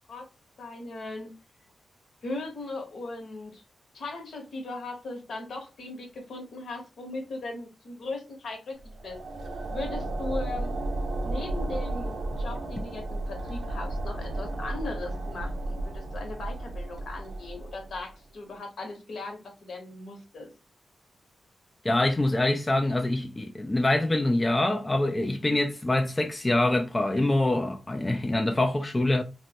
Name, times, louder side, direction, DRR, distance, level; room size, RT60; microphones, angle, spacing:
voice 1, 0.6-1.3 2.2-3.6 3.9-8.8 9.0-9.2 9.7-10.8 11.2-20.5, left 2 dB, 65° left, 0.9 m, -38 dB
sound 1, 8.8-18.1, right 2 dB, 75° right, 0.5 m, -33 dB
voice 2, 21.8-29.2, left 2 dB, 15° left, 0.3 m, -25 dB
3.2 x 2.1 x 2.7 m
wide cardioid pair, 140°, 0 cm